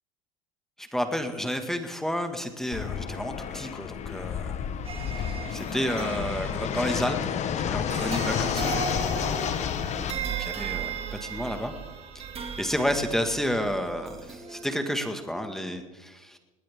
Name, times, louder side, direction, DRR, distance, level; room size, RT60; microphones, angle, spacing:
voice 1, 0.8-4.7 5.5-9.3 9.9-11.7 12.1-12.2 12.6-16.4, equal, ahead, 6 dB, 1.9 m, -31 dB
Fixed-wing aircraft airplane, 2.7-10.1, left 8 dB, 45° left, 1.3 m, -30 dB
sound 1, 4.8-15.9, right 7 dB, 35° right, 2.4 m, -37 dB
19.5 x 18.5 x 3.7 m, 1.1 s
supercardioid pair, 95°, 17 cm